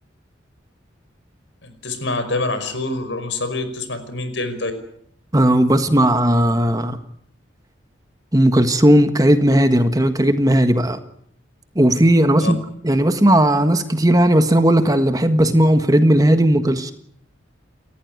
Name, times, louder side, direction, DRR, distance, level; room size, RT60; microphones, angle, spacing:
voice 1, 1.6-4.7 12.4-12.5, left 2 dB, 75° left, 9 dB, 5.4 m, -26 dB
voice 2, 5.3-7.0 8.3-11.0 11.7-12.6 12.8-16.9, right 1 dB, 20° right, 9 dB, 1.6 m, -16 dB
30.0 x 14.5 x 9.4 m, 0.67 s
head